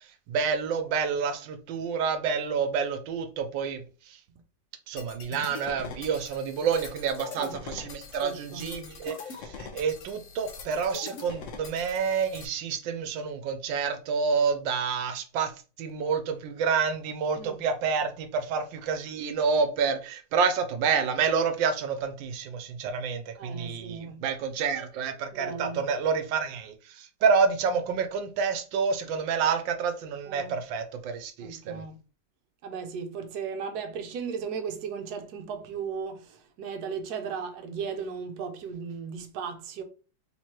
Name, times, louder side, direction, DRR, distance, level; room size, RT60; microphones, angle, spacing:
voice 1, 0.3-3.8 4.9-9.1 9.4-15.5 15.8-31.8, right 5 dB, 85° right, 1.4 m, -28 dB
sound 1, 5.0-12.5, left 5 dB, 60° left, 0.8 m, -43 dB
voice 2, 8.2-8.7 17.4-17.6 23.4-24.2 25.3-25.8 30.3-30.6 31.4-32.0 32.6-39.8, right 6 dB, 65° right, 1.2 m, -36 dB
3.7 x 3.1 x 4.3 m
omnidirectional pair, 2.0 m